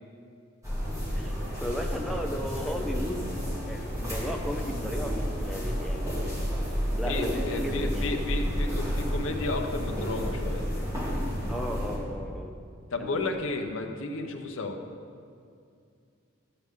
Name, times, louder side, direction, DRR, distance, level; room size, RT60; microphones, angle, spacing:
sound 1, 0.6-12.0, equal, 15° right, 2.1 m, -31 dB
voice 1, 1.1-3.2 3.7-6.6 6.9-8.5 11.5-12.5 13.0-13.3, equal, ahead, 1 dB, 0.6 m, -36 dB
voice 2, 7.1-10.6 12.9-14.8, left 2 dB, 75° left, 4 dB, 0.7 m, -32 dB
11.5 x 7.9 x 3.6 m, 2.4 s
head